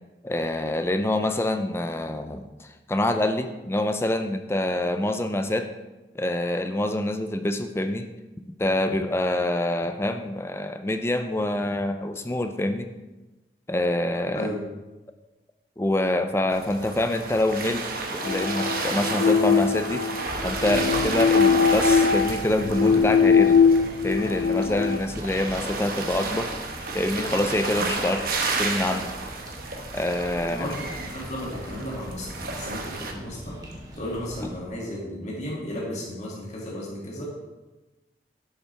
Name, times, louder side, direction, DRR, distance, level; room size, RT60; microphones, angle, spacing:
voice 1, 0.2-5.7 6.1-8.1 8.6-12.9 13.7-14.5 15.8-17.8 18.1-20.0 20.4-23.6 24.0-26.5 26.9-29.1 29.9-30.7 34.4-34.5, left 1 dB, 15° left, 7 dB, 0.4 m, -26 dB
sound 1, 16.5-33.1, right 3 dB, 55° right, 1.0 m, -32 dB
sound 2, 18.2-25.0, left 6 dB, 70° left, 0.4 m, -21 dB
sound 3, 20.2-34.6, equal, 20° right, 1.6 m, -42 dB
voice 2, 30.5-33.6 34.0-37.2, left 1 dB, 40° left, -5 dB, 2.3 m, -34 dB
11.5 x 7.5 x 3.4 m, 1.1 s
head